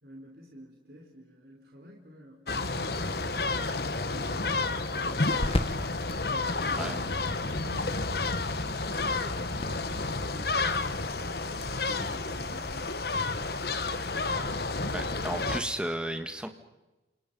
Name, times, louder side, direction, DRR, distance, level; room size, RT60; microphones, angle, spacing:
voice 1, 0.0-6.0 6.3-11.2 11.5-13.3, equal, 55° right, 0 dB, 4.3 m, -49 dB
sound 1, 2.5-15.6, left 3 dB, 55° left, 1.5 m, -30 dB
sound 2, 3.4-15.5, left 1 dB, 30° left, 1.3 m, -41 dB
voice 2, 14.9-16.5, right 1 dB, 5° right, 7 dB, 1.8 m, -33 dB
29.5 x 28.0 x 5.6 m, 1.1 s
head